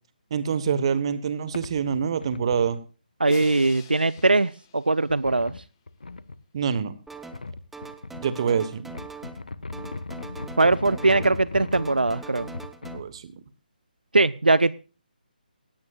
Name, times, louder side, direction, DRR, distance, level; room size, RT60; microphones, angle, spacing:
voice 1, 0.3-2.8 6.5-6.9 8.2-8.9 12.9-13.4, right 7 dB, 35° right, 14 dB, 1.2 m, -26 dB
sound 1, 1.1-1.2 1.5-2.8 3.2-3.6 4.2-4.3 5.1-6.4 7.3-8.3 8.8-13.1, left 3 dB, 65° left, 1.0 m, -38 dB
voice 2, 3.2-5.5 10.6-12.5 14.1-14.7, right 2 dB, 70° right, 20 dB, 0.6 m, -21 dB
Crash cymbal, 3.3-5.5, left 8 dB, 25° left, 1.8 m, -46 dB
sound 2, 7.1-7.5 7.7-9.5 9.7-11.5 11.7-13.0, right 4 dB, 5° right, 0.8 m, -42 dB
18.0 x 17.0 x 2.4 m, 0.34 s
figure-of-eight pair, 145°, 5 cm